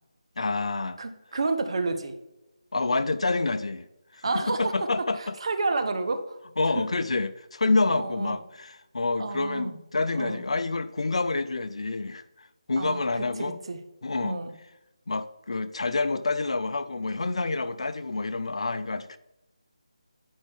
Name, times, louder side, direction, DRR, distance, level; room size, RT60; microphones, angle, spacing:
voice 1, 0.4-1.0 2.7-3.9 4.1-5.3 6.6-13.6 14.0-14.4 15.1-19.2, left 3 dB, 65° left, 12 dB, 0.6 m, -28 dB
voice 2, 1.0-2.1 4.2-4.7 5.2-6.4 6.8-6.9 7.9-8.4 9.2-9.8 10.1-10.4 12.8-13.2 13.7-13.8 14.2-14.5, right 3 dB, 55° right, 7 dB, 1.1 m, -30 dB
9.9 x 5.3 x 3.6 m, 0.95 s
figure-of-eight pair, 165°, 3 cm